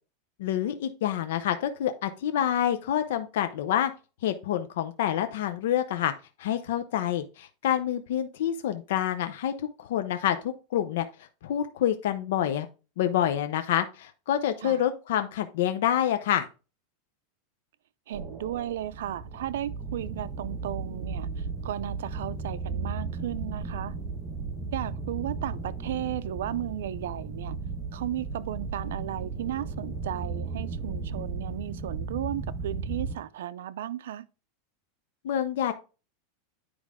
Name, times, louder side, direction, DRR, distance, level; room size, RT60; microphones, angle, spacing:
voice 1, 0.4-3.9 4.2-6.1 6.4-9.5 9.8-12.7 13.0-16.5 35.2-35.7, left 10 dB, 75° left, 0.6 m, -27 dB
sound 1, 18.1-33.1, right 4 dB, 20° right, 1.6 m, -35 dB
voice 2, 18.1-24.0 24.7-27.6 27.9-34.3, right 11 dB, 85° right, 0.5 m, -35 dB
9.5 x 4.8 x 3.6 m
supercardioid pair, 155°, 0 cm